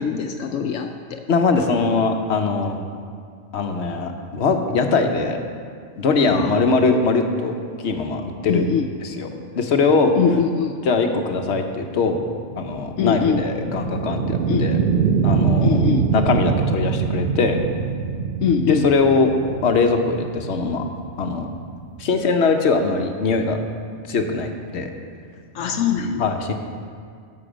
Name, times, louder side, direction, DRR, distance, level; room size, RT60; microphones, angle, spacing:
voice 1, 0.0-1.2 6.3-6.8 8.5-8.9 10.2-10.7 13.0-13.4 14.5-14.7 15.6-16.0 18.4-18.9 25.5-26.3, left 7 dB, 90° left, 4 dB, 1.0 m, -22 dB
voice 2, 1.3-2.8 3.5-5.4 6.0-7.5 7.8-8.7 9.0-9.3 9.5-10.1 10.8-12.2 12.6-14.8 15.2-15.9 16.1-17.6 18.7-19.3 19.6-20.8 21.2-21.5 22.0-23.6 24.1-24.9 26.2-26.5, left 4 dB, 65° left, 5 dB, 1.0 m, -21 dB
sound 1, 11.5-22.2, right 5 dB, 55° right, 0.8 m, -24 dB
13.0 x 6.1 x 5.0 m, 2.2 s
omnidirectional pair, 1.3 m